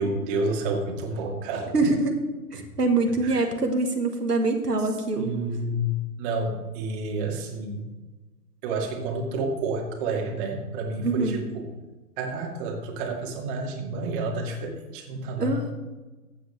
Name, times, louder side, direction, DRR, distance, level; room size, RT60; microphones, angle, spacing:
voice 1, 0.0-1.9 3.2-3.4 4.8-4.9 5.2-7.8 8.6-11.7 12.2-15.6, right 2 dB, 35° right, 1 dB, 2.2 m, -30 dB
voice 2, 1.7-2.1 2.5-5.3 11.0-11.4 15.4-15.7, right 3 dB, 90° right, 4 dB, 1.4 m, -24 dB
14.5 x 8.0 x 3.3 m, 1.2 s
figure-of-eight pair, 120°, 46 cm